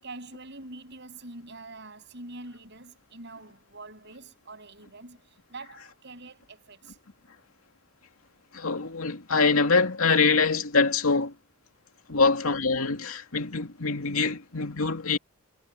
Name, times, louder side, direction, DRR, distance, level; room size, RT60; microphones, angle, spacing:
voice 1, 0.0-7.0 12.1-12.3, right 2 dB, 55° right, 7.2 m, -45 dB
voice 2, 8.5-11.3 12.1-15.2, left 4 dB, 85° left, 2.5 m, -24 dB
head